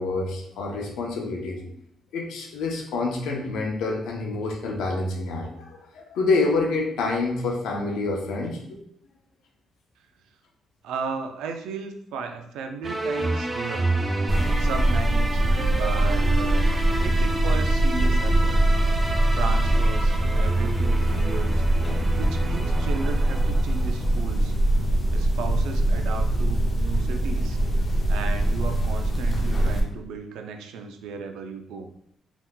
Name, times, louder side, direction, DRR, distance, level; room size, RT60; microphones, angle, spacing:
voice 1, 0.0-1.7 2.1-8.8, left 3 dB, 85° left, 1 dB, 0.7 m, -27 dB
voice 2, 10.8-13.9 14.6-15.4 15.7-16.6 17.0-18.6 19.3-21.7 22.2-24.5 25.1-27.6 28.1-31.9, right 5 dB, 85° right, 6 dB, 0.4 m, -35 dB
sound 1, 12.8-24.2, right 2 dB, 25° right, 0.4 m, -29 dB
sound 2, 14.3-29.8, right 1 dB, 30° left, 0.7 m, -23 dB
3.5 x 2.9 x 2.2 m, 0.71 s
cardioid pair, 90°, 0 cm